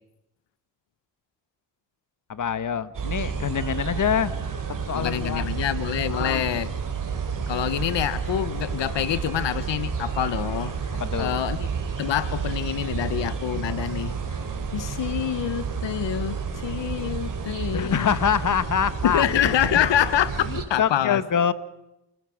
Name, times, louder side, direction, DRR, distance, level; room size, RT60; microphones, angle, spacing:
voice 1, 2.3-4.3 4.7-5.5 6.1-6.4 10.9-11.4 17.7-19.2 19.7-19.9 20.5-21.5, left 8 dB, 45° left, 14 dB, 1.3 m, -25 dB
sound 1, 2.9-20.6, right 6 dB, 45° right, 3.8 m, -30 dB
voice 2, 4.9-6.7 7.5-10.7 11.2-11.7 12.0-14.1 14.6-18.1 19.0-21.2, left 10 dB, 75° left, 14 dB, 1.2 m, -26 dB
29.0 x 20.0 x 6.5 m, 0.91 s
cardioid pair, 80°, 44 cm